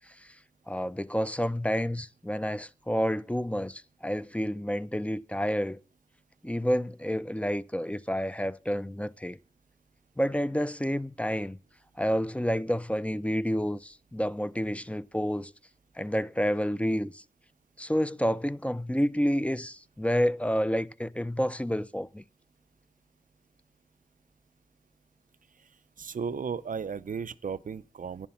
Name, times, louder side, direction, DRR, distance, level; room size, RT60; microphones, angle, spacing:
voice 1, 0.7-5.8 6.4-9.4 10.2-11.6 12.0-15.5 16.0-17.2 17.8-22.2, equal, 10° left, 0.5 m, -29 dB
voice 2, 26.0-28.3, right 6 dB, 90° right, 0.5 m, -35 dB
10.5 x 7.2 x 7.1 m
wide cardioid pair, 55°, 13 cm